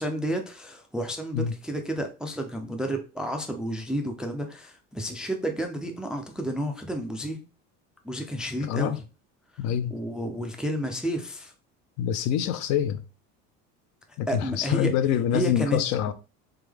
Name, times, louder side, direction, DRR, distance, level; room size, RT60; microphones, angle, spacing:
voice 1, 0.0-7.4 8.0-9.0 9.9-11.5 14.3-14.9 15.3-15.8, right 1 dB, 5° right, 0.3 m, -31 dB
voice 2, 8.6-9.0 9.6-9.9 12.0-13.0 14.2-16.1, left 10 dB, 65° left, 0.6 m, -25 dB
3.5 x 3.5 x 3.4 m
cardioid pair, 155°, 31 cm